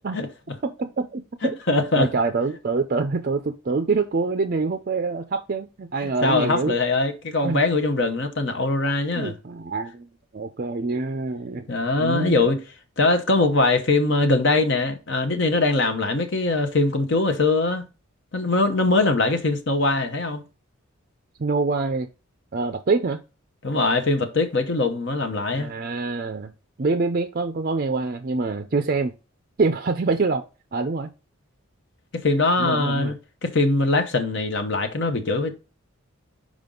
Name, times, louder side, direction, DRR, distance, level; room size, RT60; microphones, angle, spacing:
voice 1, 0.6-1.2 1.9-6.8 7.4-7.6 9.2-10.1 10.3-11.7 12.0-12.5 21.4-22.1 22.5-23.2 25.5-26.5 26.8-29.1 29.6-30.4 30.7-31.1 32.6-33.1, right 3 dB, 40° right, 0.4 m, -25 dB
voice 2, 1.4-2.1 6.0-9.3 11.7-12.6 13.0-17.9 18.3-20.4 23.6-25.7 32.1-33.1 33.4-35.6, left 3 dB, 55° left, 0.9 m, -22 dB
5.3 x 5.0 x 3.8 m
head